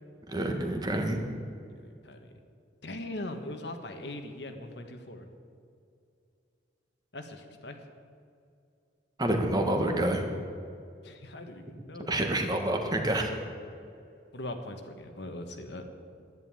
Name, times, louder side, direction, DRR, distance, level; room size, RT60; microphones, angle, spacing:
voice 1, 0.3-1.2 9.2-10.2 12.1-13.3, right 1 dB, 20° right, 3 dB, 1.5 m, -28 dB
voice 2, 1.7-2.3 2.8-5.3 7.1-7.8 11.0-12.6 14.3-15.8, left 1 dB, 65° left, 5 dB, 1.4 m, -41 dB
11.0 x 11.0 x 9.0 m, 2.4 s
head